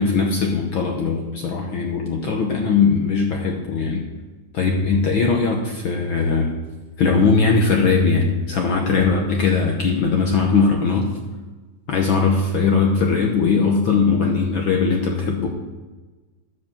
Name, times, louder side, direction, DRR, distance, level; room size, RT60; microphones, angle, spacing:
voice 1, 0.0-4.0 4.5-6.5 7.0-11.1 11.9-15.5, left 4 dB, 70° left, 1 dB, 1.2 m, -19 dB
10.5 x 5.0 x 7.1 m, 1.2 s
omnidirectional pair, 3.4 m